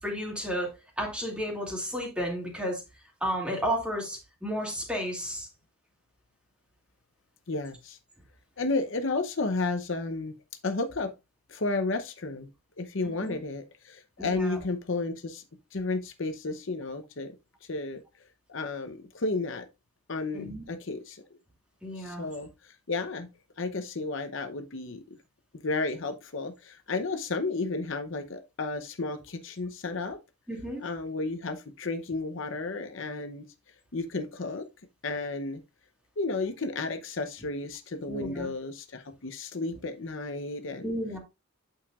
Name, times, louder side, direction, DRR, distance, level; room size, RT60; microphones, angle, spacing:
voice 1, 0.0-2.8 3.2-5.5 13.2-13.4 14.2-14.6 20.3-20.6 21.8-22.3 30.5-30.8 38.1-38.5 40.8-41.2, equal, 5° right, 2.3 m, -32 dB
voice 2, 7.5-8.0 8.6-10.3 10.6-11.1 11.5-12.5 12.8-15.4 15.7-17.4 17.7-18.0 18.5-19.7 20.1-21.2 22.0-23.3 23.6-25.0 25.6-30.2 30.8-33.4 33.9-34.6 35.0-35.6 36.2-40.9, left 3 dB, 60° left, 0.8 m, -32 dB
8.8 x 6.5 x 2.4 m
head